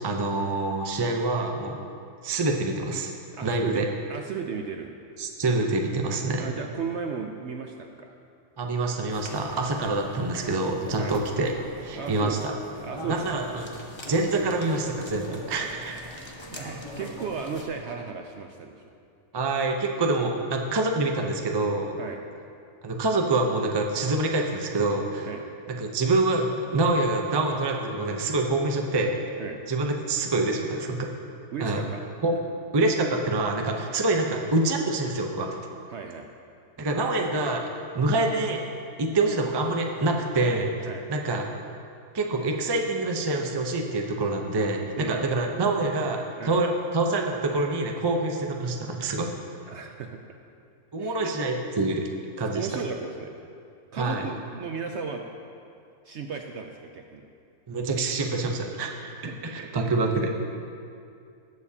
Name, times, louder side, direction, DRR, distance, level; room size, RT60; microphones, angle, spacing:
voice 1, 0.0-1.8 2.2-3.1 3.4-3.9 5.2-6.4 8.6-11.5 11.8-12.5 13.1-13.7 14.0-16.0 19.3-22.0 22.8-25.3 25.7-29.2 29.7-31.1 31.6-31.8 32.2-32.3 32.7-35.6 36.8-38.6 39.0-41.5 42.1-49.3 50.9-52.0 52.4-52.8 54.0-54.3 57.7-59.1 59.4-60.3, right 2 dB, 30° right, 2 dB, 0.5 m, -26 dB
voice 2, 3.3-3.8 4.1-4.9 6.4-8.1 11.0-11.1 11.9-12.4 12.8-13.4 16.5-18.9 22.0-22.2 25.3-25.5 29.4-29.6 31.5-32.0 35.9-36.3 40.9-41.0 45.0-45.3 46.4-46.6 49.7-50.2 51.0-51.4 52.5-53.3 53.9-55.3 56.0-57.2 59.3-59.7, right 6 dB, 65° right, 4 dB, 0.7 m, -35 dB
sound 1, 9.1-17.6, left 1 dB, 25° left, 0.7 m, -42 dB
19.0 x 7.1 x 2.8 m, 2.5 s
omnidirectional pair, 1.5 m